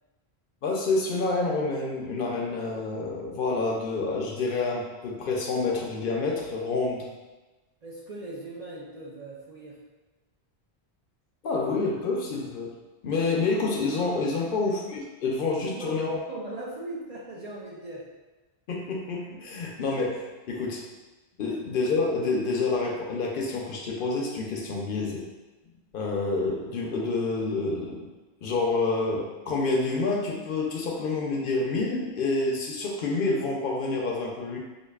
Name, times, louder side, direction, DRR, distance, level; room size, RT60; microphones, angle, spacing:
voice 1, 0.6-7.1 11.4-12.7 13.0-16.2 18.7-20.8 21.4-25.2 25.9-28.1 28.4-34.6, left 3 dB, 60° left, -1 dB, 0.7 m, -28 dB
voice 2, 7.8-9.8 14.4-14.5 15.7-18.1, right 2 dB, 50° right, -5 dB, 0.5 m, -39 dB
4.6 x 2.5 x 2.3 m, 1.2 s
omnidirectional pair, 1.1 m